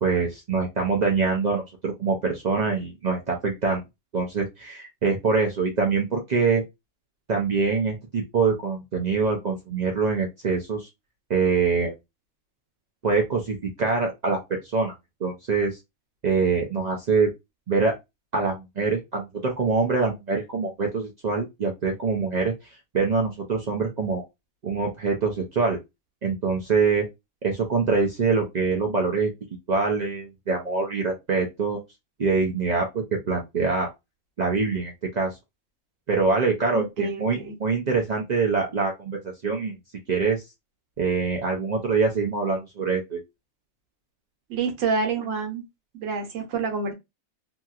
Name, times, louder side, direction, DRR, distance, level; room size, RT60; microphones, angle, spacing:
voice 1, 0.0-3.8 4.1-6.6 7.3-10.9 11.3-11.9 13.0-14.9 15.2-15.8 16.2-17.3 17.7-17.9 18.3-24.2 24.6-25.8 26.2-27.1 27.4-29.3 29.7-31.8 32.2-33.9 34.4-35.4 36.1-39.8 40.1-40.4 41.0-43.2, right 4 dB, 85° right, 0.3 m, -24 dB
voice 2, 36.7-37.5 44.5-45.6 45.9-46.9, right 4 dB, 65° right, 1.1 m, -28 dB
2.8 x 2.8 x 2.4 m
omnidirectional pair, 1.5 m